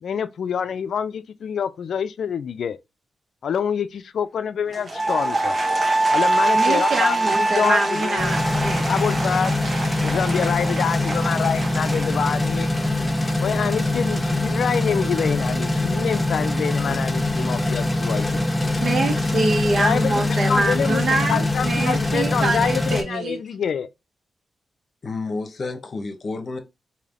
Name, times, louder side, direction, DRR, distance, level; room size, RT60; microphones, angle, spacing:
voice 1, 0.0-2.8 3.4-5.6 6.1-8.4 8.9-9.5 10.0-12.7 13.4-18.4 19.8-23.9, left 7 dB, 75° left, 0.4 m, -26 dB
Applause / Crowd, 4.6-12.9, right 2 dB, 40° right, 1.1 m, -30 dB
Wind instrument woodwind instrument, 5.0-9.3, right 2 dB, 10° right, 0.5 m, -23 dB
voice 2, 6.5-8.9 18.8-23.4, right 2 dB, 65° right, 1.2 m, -24 dB
sound 1, 8.2-23.0, left 2 dB, 15° left, 1.1 m, -23 dB
voice 3, 25.0-26.6, left 3 dB, 55° left, 0.8 m, -30 dB
3.3 x 2.7 x 3.6 m
cardioid pair, 65°, 0 cm